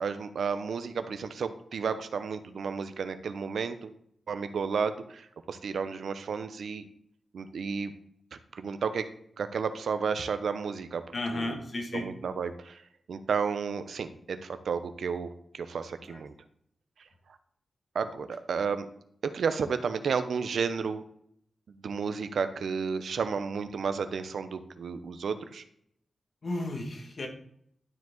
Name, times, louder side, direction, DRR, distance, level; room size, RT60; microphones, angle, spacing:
voice 1, 0.0-3.9 4.3-6.9 7.3-7.9 8.5-9.0 9.4-11.0 11.3-11.6 11.9-12.8 13.1-15.3 15.5-16.3 17.9-18.9 19.2-21.0 21.8-25.6, right 5 dB, 80° right, 10 dB, 0.8 m, -32 dB
voice 2, 11.1-12.1 16.1-16.2 26.4-27.3, left 2 dB, 55° left, 3 dB, 2.0 m, -33 dB
12.0 x 4.8 x 3.9 m, 0.67 s
cardioid pair, 65°, 0 cm